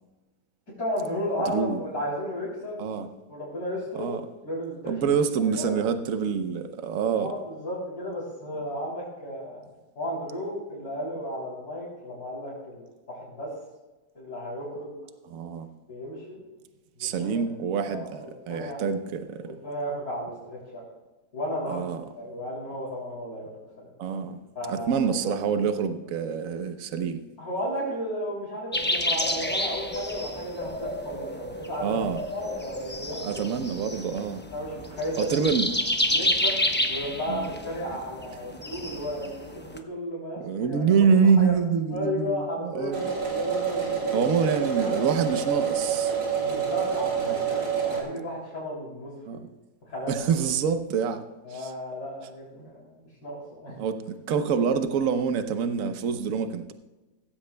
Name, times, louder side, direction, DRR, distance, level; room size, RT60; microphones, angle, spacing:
voice 1, 0.8-2.9 3.3-4.1 4.4-4.9 5.5-5.7 7.2-9.6 10.0-13.5 14.1-14.9 15.9-16.4 17.0-17.5 17.9-18.8 19.4-20.8 21.3-21.8 22.2-23.5 23.8-23.9 24.5-25.3 27.4-32.0 32.3-33.4 34.5-35.4 36.1-36.6 36.9-40.8 41.2-41.5 41.9-44.3 44.7-45.0 46.2-49.4 49.8-50.3 51.4-53.8, equal, 55° left, -8 dB, 4.0 m, -34 dB
voice 2, 1.5-1.8 2.8-3.1 4.0-4.2 4.8-7.3 15.3-15.7 17.0-19.5 21.7-22.0 24.0-24.4 24.7-27.2 31.8-32.2 33.2-34.4 35.2-35.7 37.3-37.5 40.4-43.2 44.1-46.1 47.2-47.4 49.3-49.4 50.1-51.2 51.5-51.7 52.6-52.7 53.8-56.7, right 6 dB, 55° right, 9 dB, 1.2 m, -26 dB
sound 1, 28.7-39.8, left 1 dB, 10° left, 0.5 m, -30 dB
sound 2, 42.9-48.0, right 7 dB, 80° right, 3.3 m, -27 dB
16.0 x 14.5 x 2.3 m, 1.1 s
omnidirectional pair, 1.9 m